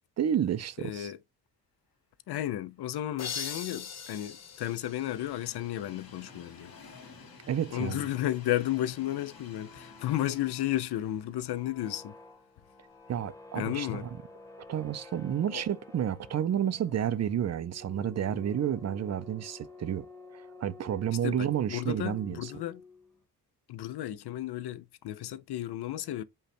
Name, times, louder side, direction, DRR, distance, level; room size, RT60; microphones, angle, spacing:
voice 1, 0.2-1.1 7.5-8.0 13.1-14.1 14.7-20.1 20.3-22.5, right 9 dB, 45° right, 0.5 m, -30 dB
voice 2, 0.8-1.2 2.3-6.8 7.7-12.1 13.5-14.1 15.5-15.6 21.2-22.8 23.7-26.2, left 13 dB, 85° left, 0.6 m, -33 dB
Train, 2.9-13.0 13.4-13.5 14.6-14.7, left 4 dB, 65° left, 1.9 m, -53 dB
sound 1, 3.2-5.9, left 7 dB, 45° left, 0.7 m, -41 dB
sound 2, 9.5-23.2, left 3 dB, 10° left, 1.0 m, -51 dB
5.4 x 2.3 x 4.2 m
wide cardioid pair, 130°, 38 cm